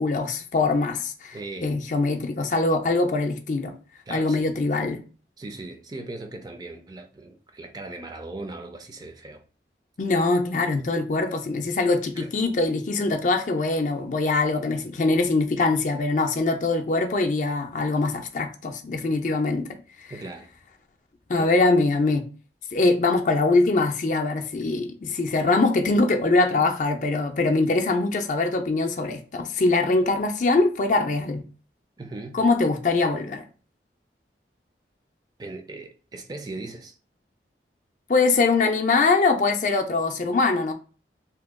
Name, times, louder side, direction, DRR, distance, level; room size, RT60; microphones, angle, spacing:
voice 1, 0.0-1.4 1.6-3.7 4.1-5.0 10.0-19.8 20.0-20.1 21.3-22.3 22.7-31.4 32.3-33.4 38.1-40.7, left 3 dB, 45° left, 0.4 m, -23 dB
voice 2, 1.3-1.8 4.1-4.5 5.4-9.4 12.2-12.3 20.1-20.5 21.3-21.5 32.0-32.4 35.4-37.0, right 2 dB, 25° right, 0.4 m, -38 dB
2.8 x 2.2 x 3.5 m
head